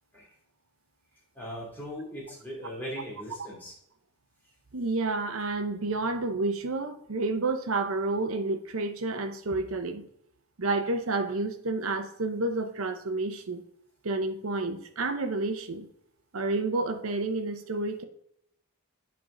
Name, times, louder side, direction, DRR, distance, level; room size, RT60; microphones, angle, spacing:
voice 1, 1.3-3.8, equal, 10° left, -5 dB, 2.6 m, -39 dB
voice 2, 4.7-10.1 10.6-13.6 14.0-15.9 16.3-18.0, right 3 dB, 80° right, 7 dB, 0.8 m, -30 dB
8.7 x 4.6 x 3.9 m, 0.72 s
head